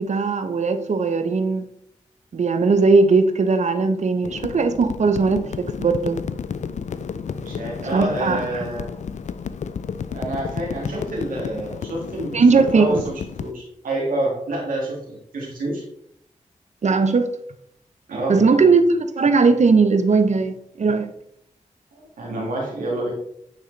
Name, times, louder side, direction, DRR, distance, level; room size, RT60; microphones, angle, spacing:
voice 1, 0.0-1.6 2.3-6.2 7.9-8.6 12.3-13.0 16.8-17.3 18.3-21.1, right 4 dB, 55° right, 0.7 m, -18 dB
sound 1, 4.2-13.5, left 6 dB, 60° left, 0.4 m, -32 dB
voice 2, 7.3-8.9 10.1-13.1 13.4-15.8 18.1-18.7 21.9-23.1, right 1 dB, 90° right, 2.0 m, -28 dB
9.1 x 3.5 x 3.2 m
cardioid pair, 40°, 14 cm